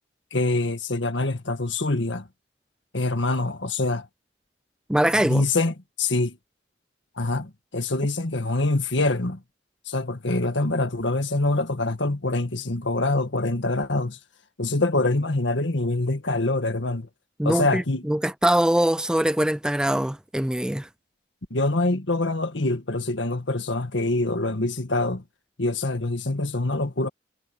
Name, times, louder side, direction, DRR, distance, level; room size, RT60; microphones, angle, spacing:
voice 1, 0.3-2.3 2.9-4.1 5.2-6.4 7.2-9.4 9.9-14.2 14.6-17.1 17.4-18.0 21.5-25.2 25.6-27.1, left 2 dB, 70° left, 1.8 m, -25 dB
voice 2, 4.9-5.4 17.4-20.9, right 1 dB, 5° right, 0.4 m, -23 dB
head